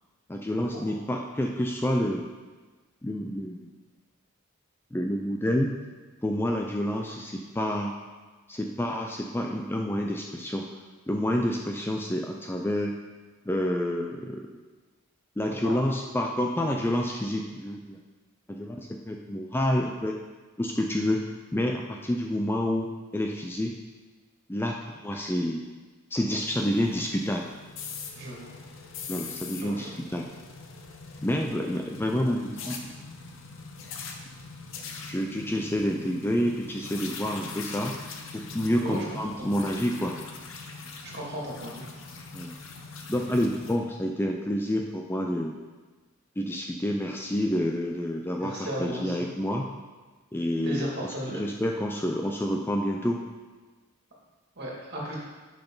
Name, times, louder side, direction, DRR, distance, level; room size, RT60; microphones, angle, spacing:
voice 1, 0.3-2.3 3.0-3.7 4.9-5.7 6.2-7.9 8.5-10.7 11.1-13.0 13.5-14.4 15.4-18.0 18.5-20.1 20.6-21.2 21.5-22.9 23.1-23.8 24.5-25.6 26.1-27.4 29.1-30.3 31.2-32.8 35.1-37.9 38.3-40.2 42.3-42.5 43.1-45.6 46.4-48.5 48.8-49.7 50.3-50.9 51.3-53.2, equal, 10° left, 1 dB, 0.4 m, -28 dB
voice 2, 15.5-15.9 28.2-28.6 29.6-29.9 38.8-39.0 39.4-39.7 41.0-41.9 48.4-49.3 50.6-51.4 54.6-55.2, equal, 50° right, -4 dB, 2.2 m, -36 dB
sound 1, 26.3-43.8, left 4 dB, 65° left, 0.9 m, -42 dB
10.5 x 5.9 x 3.9 m, 1.3 s
head